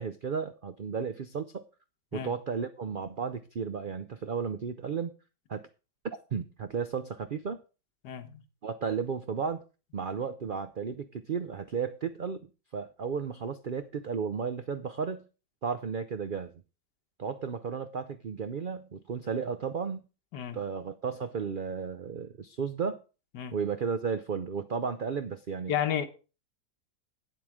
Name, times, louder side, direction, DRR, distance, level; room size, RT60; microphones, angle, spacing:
voice 1, 0.0-1.6 2.1-5.1 5.5-5.7 6.3-7.6 8.6-9.6 9.9-15.3 15.6-16.5 17.2-20.0 20.5-23.0 23.5-25.7, right 6 dB, 85° right, 0.4 m, -34 dB
voice 2, 8.0-8.4 20.3-20.6 23.3-23.6 25.7-26.1, left 9 dB, 85° left, 1.6 m, -32 dB
9.2 x 7.7 x 4.9 m
omnidirectional pair, 1.8 m